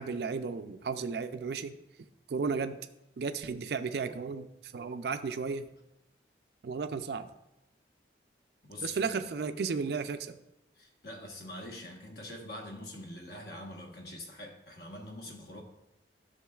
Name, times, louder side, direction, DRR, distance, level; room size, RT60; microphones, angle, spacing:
voice 1, 0.0-1.7 2.3-2.8 3.2-5.7 6.6-7.3 8.8-10.4, right 5 dB, 60° right, 9 dB, 0.4 m, -34 dB
voice 2, 8.6-9.1 10.8-15.6, left 1 dB, 55° left, 2 dB, 1.2 m, -44 dB
11.0 x 6.5 x 2.3 m, 0.88 s
head